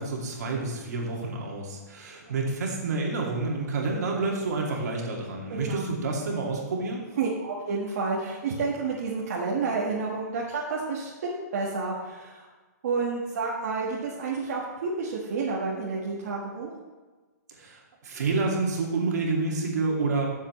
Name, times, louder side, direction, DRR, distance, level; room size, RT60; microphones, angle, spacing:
voice 1, 0.0-7.0 17.6-20.3, right 3 dB, 65° right, -1 dB, 2.3 m, -29 dB
voice 2, 5.5-5.9 7.2-12.5 12.8-16.7, right 4 dB, 50° right, -5 dB, 1.6 m, -30 dB
12.5 x 7.2 x 3.2 m, 1.3 s
hypercardioid pair, 170°, 9 cm